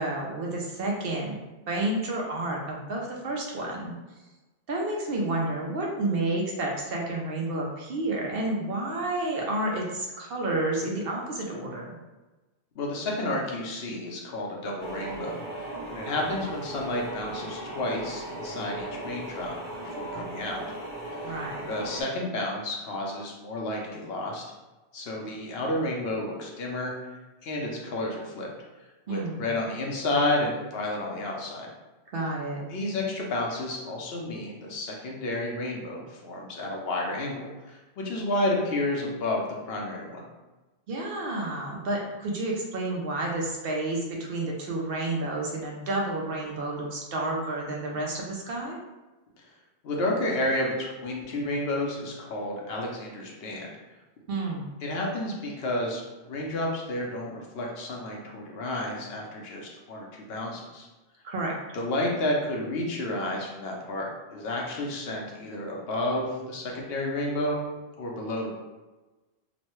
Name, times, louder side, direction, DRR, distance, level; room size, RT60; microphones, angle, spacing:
voice 1, 0.0-1.4 1.7-3.9 4.7-12.0 21.2-21.6 29.1-29.5 32.1-32.6 40.9-48.8 54.3-54.7 61.2-61.6, right 2 dB, 65° right, -1 dB, 0.7 m, -30 dB
voice 2, 12.8-15.6 15.9-20.6 21.2-21.4 21.7-24.4 24.9-26.9 27.4-28.5 29.1-31.7 32.7-40.2 49.8-53.7 54.8-60.9 61.7-67.7 68.0-68.6, left 1 dB, 70° left, -1 dB, 0.8 m, -31 dB
sound 1, 14.8-22.0, right 1 dB, 30° left, 0.6 m, -37 dB
3.0 x 2.1 x 2.9 m, 1.2 s
omnidirectional pair, 1.1 m